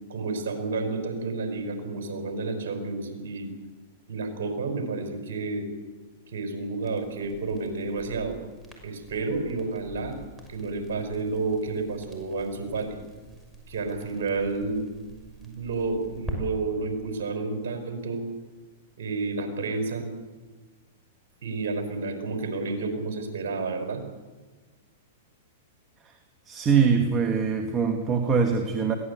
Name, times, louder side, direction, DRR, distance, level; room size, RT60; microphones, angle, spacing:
voice 1, 0.1-3.5 4.1-5.7 6.3-8.4 8.8-10.2 10.5-13.0 13.7-14.9 15.4-18.2 19.0-20.1 21.4-24.0, right 3 dB, 70° right, 5 dB, 5.2 m, -30 dB
Crackle, 6.8-16.4, right 1 dB, 10° right, 6.2 m, -45 dB
voice 2, 26.5-29.0, right 6 dB, 25° right, 5 dB, 2.3 m, -23 dB
22.0 x 17.0 x 8.3 m, 1.3 s
hypercardioid pair, 110°, 0 cm